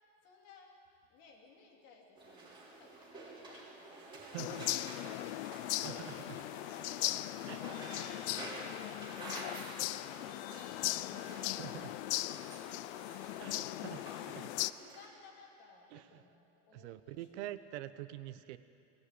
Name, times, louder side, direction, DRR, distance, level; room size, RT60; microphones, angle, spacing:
voice 1, 0.2-0.8 1.1-17.5, left 4 dB, 50° left, 1 dB, 3.5 m, -60 dB
sound 1, 2.1-15.1, right 2 dB, 15° right, 3.8 m, -50 dB
voice 2, 4.3-4.6 5.8-6.4 7.5-7.6 11.1-11.9 13.4-14.0 14.3-14.5 15.9-16.2 16.7-18.6, right 14 dB, 80° right, 13 dB, 1.0 m, -46 dB
sound 2, 4.4-14.7, left 17 dB, 90° left, 0.6 m, -38 dB
20.0 x 16.5 x 8.5 m, 2.6 s
supercardioid pair, 165°, 33 cm